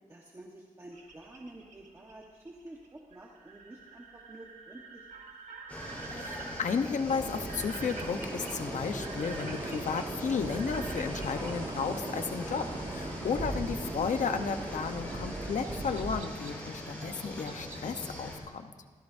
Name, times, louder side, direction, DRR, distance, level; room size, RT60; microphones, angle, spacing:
voice 1, 0.1-5.1, right 1 dB, 20° right, -2 dB, 1.3 m, -49 dB
sound 1, 0.9-11.5 13.1-18.3, right 4 dB, 70° right, 1.7 m, -49 dB
sound 2, 5.7-18.4, left 1 dB, 10° left, 4.0 m, -42 dB
voice 2, 6.1-18.7, left 5 dB, 70° left, 7 dB, 1.0 m, -33 dB
sound 3, 7.1-16.1, right 2 dB, 35° right, 2.0 m, -39 dB
27.5 x 15.5 x 2.7 m, 1.6 s
wide cardioid pair, 180°, 13 cm